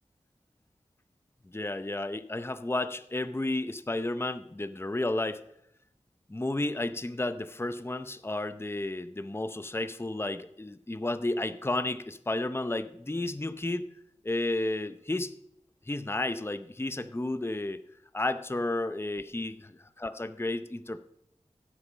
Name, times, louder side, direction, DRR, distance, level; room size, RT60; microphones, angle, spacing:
voice 1, 1.5-5.4 6.3-13.9 14.2-15.3 15.9-17.8 18.1-21.0, left 2 dB, 20° left, 12 dB, 0.7 m, -32 dB
15.0 x 8.2 x 6.1 m, 0.76 s
wide cardioid pair, 55°, 13 cm